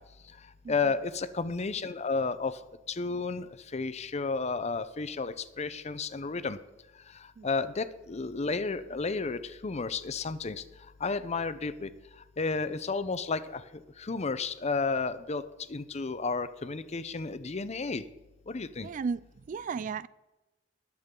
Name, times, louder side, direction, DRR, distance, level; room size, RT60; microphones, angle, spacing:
voice 1, 0.7-2.6 2.9-3.5 3.7-6.6 7.4-10.6 11.0-11.9 12.4-18.0 18.5-18.9, left 4 dB, 35° left, 13 dB, 0.6 m, -32 dB
voice 2, 18.8-20.1, right 5 dB, 40° right, 19 dB, 0.3 m, -34 dB
20.0 x 7.3 x 3.8 m, 1.1 s
head